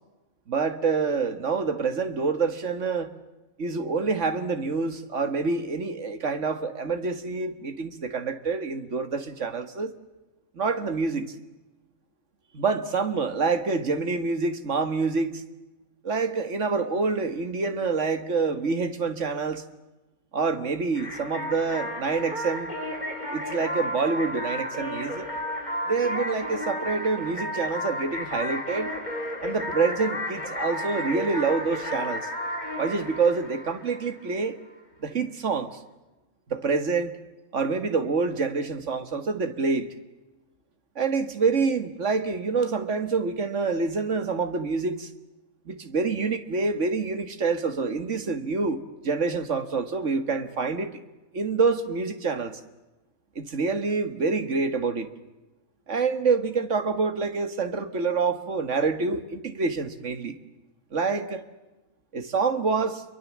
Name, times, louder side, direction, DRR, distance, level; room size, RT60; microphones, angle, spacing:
voice 1, 0.5-3.1 3.6-9.9 10.6-11.3 12.5-15.4 16.0-19.6 20.3-22.7 23.3-25.3 25.9-28.9 29.4-32.3 32.8-34.6 35.0-35.8 36.5-37.2 37.5-39.9 41.0-45.1 45.7-51.0 51.3-52.6 53.4-55.1 55.9-60.4 60.9-61.4 62.1-63.0, right 4 dB, 60° right, 2.0 m, -27 dB
sound 1, 20.9-34.4, left 1 dB, 30° left, 3.6 m, -33 dB
28.0 x 23.0 x 7.4 m
omnidirectional pair, 1.5 m